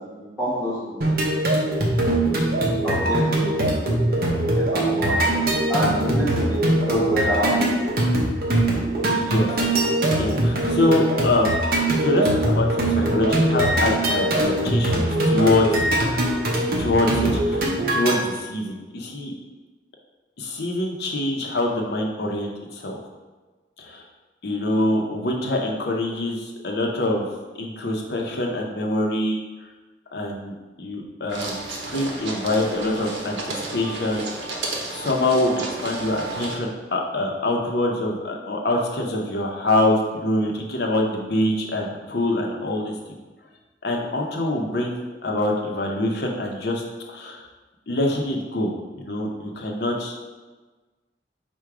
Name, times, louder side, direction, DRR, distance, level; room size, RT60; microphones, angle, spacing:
voice 1, 0.0-2.5 2.8-5.2 5.7-8.0, left 1 dB, 10° right, -12 dB, 1.1 m, -28 dB
sound 1, 1.0-18.2, right 1 dB, 55° right, 0.7 m, -22 dB
voice 2, 9.1-9.5 10.2-11.5 12.0-16.2 16.8-17.6 17.9-19.3 20.4-23.0 23.8-24.0 24.4-27.3 27.6-29.4 30.1-34.3 34.9-43.2 43.8-46.8 47.1-47.4 47.9-50.1, left 1 dB, 60° left, 1 dB, 0.7 m, -25 dB
sound 2, 31.3-36.6, right 3 dB, 90° right, 0.7 m, -32 dB
4.6 x 2.2 x 4.8 m, 1.3 s
head